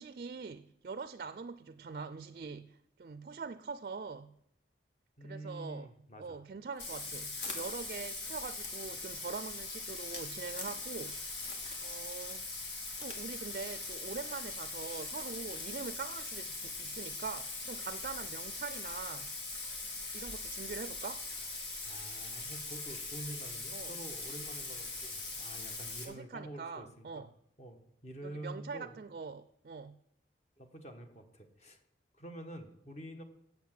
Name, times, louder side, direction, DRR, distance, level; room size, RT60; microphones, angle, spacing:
voice 1, 0.0-4.3 5.2-5.9 6.2-11.3 11.8-12.4 13.0-19.3 20.1-21.2 23.7-23.9 26.0-27.3 28.2-30.0, right 4 dB, 50° right, 0.4 m, -43 dB
voice 2, 5.2-6.4 21.8-27.2 27.6-28.9 30.6-31.8 32.1-33.2, right 1 dB, 40° left, 1.3 m, -47 dB
Bathtub (filling or washing), 6.8-26.0, left 3 dB, 85° left, 2.2 m, -41 dB
sound 1, 6.8-11.1 11.4-11.9 12.2-13.2 13.5-13.6 14.3-14.5, left 3 dB, 70° left, 1.9 m, -47 dB
7.9 x 7.3 x 7.4 m
head